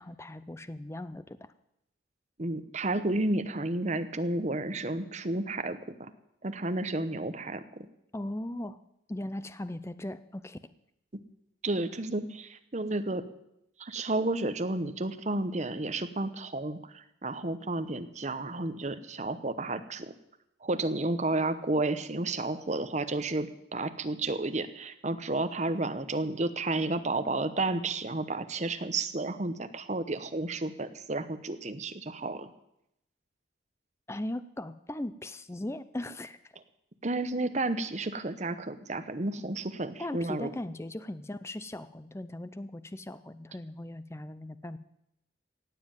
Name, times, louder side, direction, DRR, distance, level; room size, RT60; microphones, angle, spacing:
voice 1, 0.0-1.5 8.1-8.8 9.1-10.6 34.1-36.5 40.0-44.8, left 1 dB, 15° left, 13 dB, 0.5 m, -38 dB
voice 2, 2.4-6.1 6.4-7.9 11.1-11.2 11.6-13.3 13.8-20.1 20.6-32.5 37.0-40.5, right 2 dB, 35° right, 10 dB, 0.9 m, -32 dB
17.0 x 7.6 x 9.0 m, 0.81 s
head